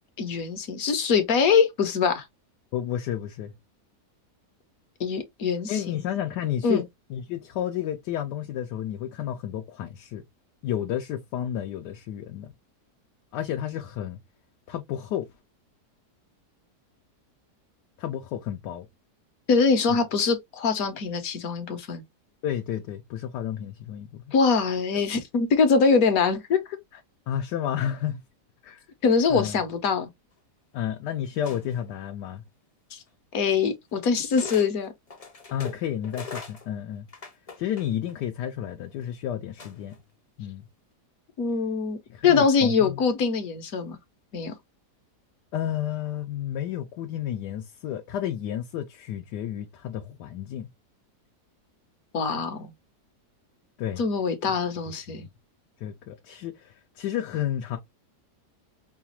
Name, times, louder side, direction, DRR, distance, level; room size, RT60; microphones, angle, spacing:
voice 1, 0.2-2.2 5.0-5.9 6.6-6.8 19.5-22.0 24.3-26.6 29.0-30.1 32.9-33.0 33.3-34.9 41.4-42.0 42.2-44.0 44.3-44.5 52.1-52.7 54.0-55.3, left 5 dB, 65° left, 1.2 m, -23 dB
voice 2, 2.7-3.5 5.7-6.8 7.1-10.2 10.6-12.5 13.3-14.2 14.7-15.3 18.0-18.9 19.9-20.0 22.4-24.2 27.3-28.2 28.6-28.8 29.3-29.6 30.7-32.4 35.5-37.0 37.6-39.9 40.4-40.6 42.1-43.0 45.5-50.7 53.8-54.0 55.1-55.3 55.8-57.8, left 10 dB, 85° left, 1.2 m, -31 dB
sound 1, 31.4-31.9 33.1-33.2 34.3-34.7 35.1-38.2 39.6-40.0, left 5 dB, 35° left, 0.5 m, -41 dB
4.9 x 2.4 x 2.8 m
omnidirectional pair, 1.8 m